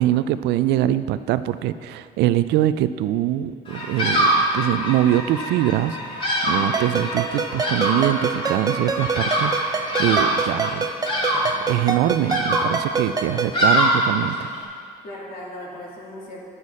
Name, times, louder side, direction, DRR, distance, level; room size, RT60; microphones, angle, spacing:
voice 1, 0.0-6.0 6.4-10.9 11.3-14.5, right 13 dB, 85° right, 14 dB, 0.4 m, -23 dB
Bird vocalization bird call bird song, 3.7-14.6, equal, 30° left, 2.5 m, -24 dB
voice 2, 6.4-6.8 13.3-13.4 15.0-16.4, left 1 dB, 60° left, -5 dB, 3.1 m, -37 dB
Ringtone, 6.7-13.6, right 5 dB, 20° right, 0.6 m, -27 dB
10.0 x 8.4 x 4.9 m, 2.2 s
cardioid pair, 110°, 17 cm